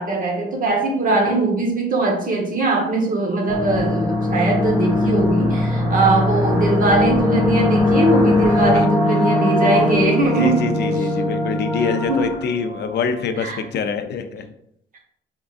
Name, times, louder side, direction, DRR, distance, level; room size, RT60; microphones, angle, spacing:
voice 1, 0.0-10.7 12.1-12.3 13.4-13.6, right 2 dB, 45° right, 1 dB, 1.0 m, -20 dB
sound 1, 3.5-13.2, left 1 dB, 10° right, 1.4 m, -20 dB
voice 2, 8.6-8.9 10.4-14.5, left 5 dB, 60° left, 8 dB, 0.5 m, -25 dB
3.7 x 3.6 x 2.4 m, 0.74 s
cardioid pair, 90°, 20 cm